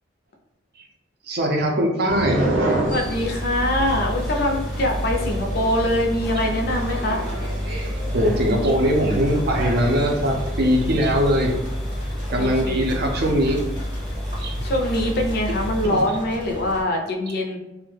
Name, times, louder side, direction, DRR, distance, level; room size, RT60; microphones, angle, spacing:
voice 1, 1.3-2.5 8.1-11.6 12.3-13.7 14.4-14.7 15.8-16.0, equal, 55° right, 1 dB, 0.5 m, -21 dB
sound 1, 2.1-11.5, right 1 dB, 90° right, 0.7 m, -30 dB
sound 2, 2.8-16.8, equal, 25° right, 0.7 m, -37 dB
voice 2, 2.9-7.2 12.4-13.0 14.6-17.6, left 1 dB, 55° left, 2 dB, 0.4 m, -23 dB
sound 3, 3.0-15.9, equal, ahead, 0.4 m, -29 dB
2.3 x 2.1 x 3.1 m, 0.96 s
head